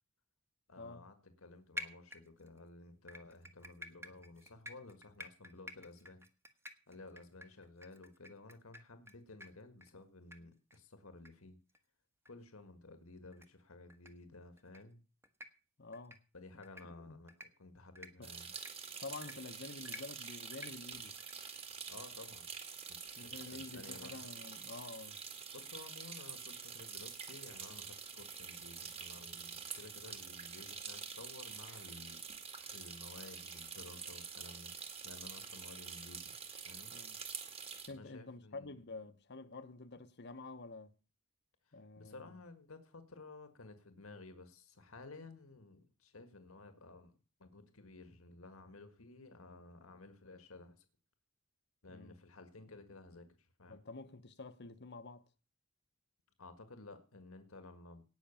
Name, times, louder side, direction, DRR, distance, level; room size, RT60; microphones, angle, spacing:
voice 1, 0.7-6.3 6.9-11.6 12.3-15.0 16.3-17.3 17.6-18.5 20.9-21.0 21.9-22.5 22.9-24.2 25.5-32.2 32.7-34.7 35.0-36.4 36.6-37.0 37.9-38.8 41.7-50.9 51.8-53.8 56.4-58.0, left 2 dB, 75° left, 1.7 m, -54 dB
sound 1, 1.8-2.6 3.1-9.1 9.4-9.5 9.8-9.9 10.3-10.4 10.7-10.8 11.2-11.3 11.7-11.8 12.2-12.3 13.3-13.5 13.9-14.1 14.6-14.8 15.2-15.5 15.9-16.2 16.6-16.8 17.3-17.5 17.9-18.1 18.6-18.7 19.2-19.3 19.8-20.0 20.5-20.7 21.2-21.3, left 1 dB, 10° right, 1.3 m, -48 dB
voice 2, 15.8-16.2 16.5-17.2 18.2-18.4 19.0-21.2 23.1-25.2 36.9-37.2 37.8-41.0 41.7-42.3 51.9-52.2 53.7-55.3, left 3 dB, 55° left, 1.1 m, -49 dB
sound 2, 18.2-37.9, right 6 dB, 30° right, 2.2 m, -47 dB
18.0 x 6.2 x 7.1 m
head